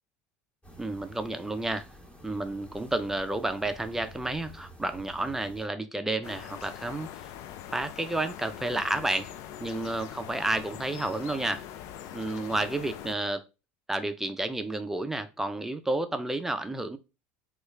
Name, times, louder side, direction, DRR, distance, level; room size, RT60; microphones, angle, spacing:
sound 1, 0.6-5.7, right 1 dB, 20° left, 1.0 m, -50 dB
voice 1, 0.8-1.9 2.2-7.2 7.7-9.3 9.6-11.6 12.1-13.4 13.9-17.0, right 2 dB, 5° right, 0.4 m, -31 dB
sound 2, 6.2-13.1, left 10 dB, 55° left, 0.4 m, -43 dB
3.5 x 2.4 x 3.1 m
supercardioid pair, 120°, 6 cm